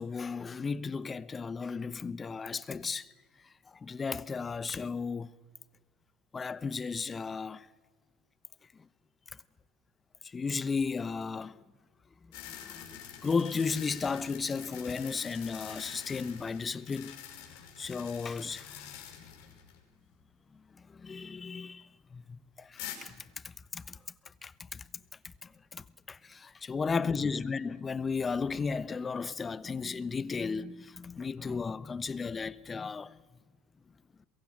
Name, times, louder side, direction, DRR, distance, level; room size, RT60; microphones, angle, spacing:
voice 1, 0.0-3.1 3.7-5.3 6.3-7.7 10.2-11.6 12.2-17.3 17.8-18.9 20.5-23.1 23.4-24.0 24.4-24.9 25.2-33.2, left 5 dB, 25° left, 1.0 m, -35 dB
sound 1, 12.3-19.8 20.1-20.2 22.8-23.0, left 10 dB, 65° left, 5.4 m, -46 dB
22.5 x 22.5 x 8.9 m
hypercardioid pair, 75°, 0 cm